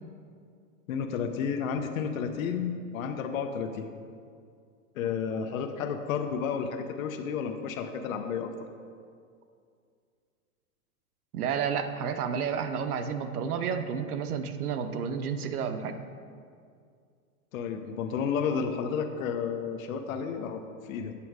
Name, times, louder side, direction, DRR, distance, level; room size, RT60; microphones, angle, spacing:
voice 1, 0.9-3.9 5.0-8.5 17.5-21.1, left 6 dB, 65° left, 5 dB, 0.8 m, -31 dB
voice 2, 11.3-16.0, right 7 dB, 90° right, 9 dB, 0.8 m, -31 dB
8.5 x 6.0 x 4.7 m, 2.3 s
supercardioid pair, 160°, 43 cm